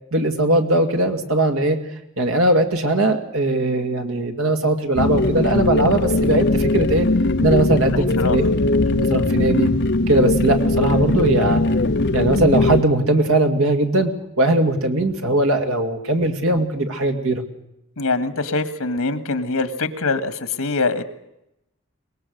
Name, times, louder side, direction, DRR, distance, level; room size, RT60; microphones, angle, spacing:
voice 1, 0.1-1.8 2.2-7.1 7.4-8.4 8.9-9.7 10.1-11.6 12.1-14.1 14.4-17.4, right 2 dB, 75° right, 5 dB, 2.3 m, -19 dB
sound 1, 4.9-12.8, left 2 dB, 50° left, 0.8 m, -20 dB
voice 2, 7.8-8.4 18.0-21.0, left 3 dB, 85° left, 12 dB, 1.6 m, -24 dB
23.0 x 20.5 x 6.5 m, 0.86 s
head